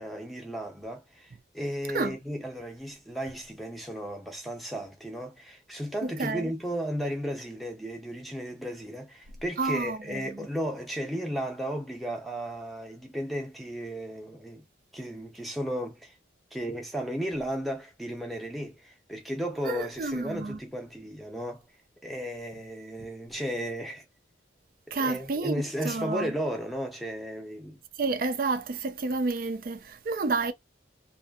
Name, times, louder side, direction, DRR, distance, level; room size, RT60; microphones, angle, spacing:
voice 1, 0.0-14.6 14.9-16.2 16.5-21.6 22.0-24.0 25.0-27.8, equal, ahead, 0.6 m, -34 dB
voice 2, 6.0-6.5 9.6-10.5 19.6-20.6 24.9-26.3 28.0-30.5, right 3 dB, 50° right, 0.4 m, -30 dB
2.6 x 2.5 x 2.3 m
head